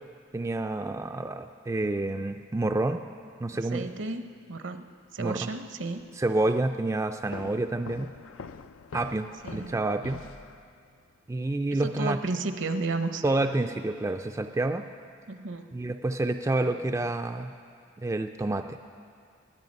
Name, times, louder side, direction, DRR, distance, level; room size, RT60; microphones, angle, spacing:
voice 1, 0.3-3.0 3.4-3.9 5.2-5.5 6.2-8.1 8.9-10.2 11.3-12.2 13.2-14.9 15.7-17.5 18.0-18.8, right 2 dB, 15° right, 6 dB, 0.3 m, -28 dB
voice 2, 3.5-4.8 5.1-6.1 9.4-9.8 11.7-13.2 15.3-15.7, right 3 dB, 65° right, 9 dB, 0.8 m, -33 dB
sound 1, 7.3-11.0, left 5 dB, 90° left, 0.5 m, -44 dB
21.5 x 9.2 x 5.3 m, 2.3 s
head